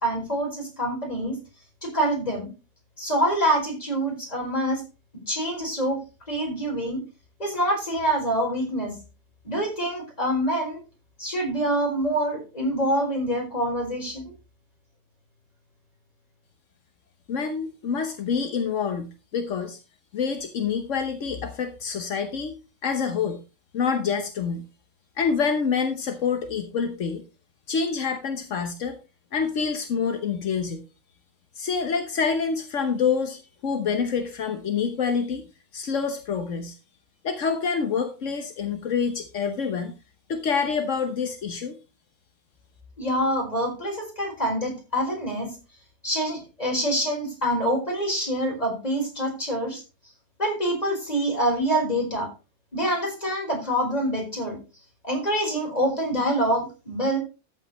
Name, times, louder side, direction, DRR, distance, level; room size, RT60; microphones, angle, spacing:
voice 1, 0.0-1.3 1.8-2.5 3.0-4.8 5.3-6.0 6.3-7.0 7.4-8.9 9.4-10.8 11.2-14.2 43.0-45.5 46.0-49.8 50.4-52.3 52.7-54.6 55.0-57.2, right 1 dB, 30° left, 0 dB, 5.0 m, -26 dB
voice 2, 17.3-19.8 20.1-23.4 23.7-24.6 25.2-27.2 27.7-29.0 29.3-30.8 31.5-35.5 35.7-36.8 37.2-39.9 40.3-41.8, left 6 dB, 80° left, 6 dB, 1.4 m, -27 dB
13.5 x 8.1 x 3.1 m, 0.30 s
omnidirectional pair, 1.3 m